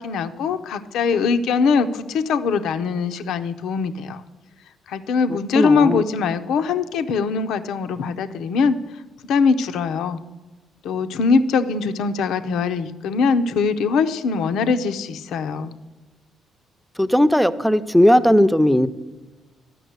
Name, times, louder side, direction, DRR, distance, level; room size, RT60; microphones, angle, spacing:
voice 1, 0.0-4.2 4.9-8.8 9.3-10.2 10.8-15.7, left 5 dB, 80° left, 9 dB, 0.6 m, -22 dB
voice 2, 5.3-6.0 17.0-18.9, equal, ahead, 11 dB, 0.6 m, -17 dB
12.5 x 6.0 x 8.0 m, 1.2 s
supercardioid pair, 65°, 0 cm